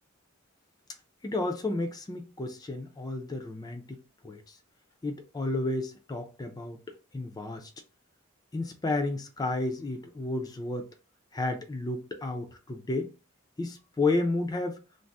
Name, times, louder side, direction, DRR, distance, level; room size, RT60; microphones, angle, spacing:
voice 1, 1.2-4.0 4.2-4.4 5.0-6.8 7.1-7.7 8.5-10.9 11.3-13.1 13.6-14.8, left 2 dB, 20° left, 0.4 m, -31 dB
2.6 x 2.0 x 3.4 m
head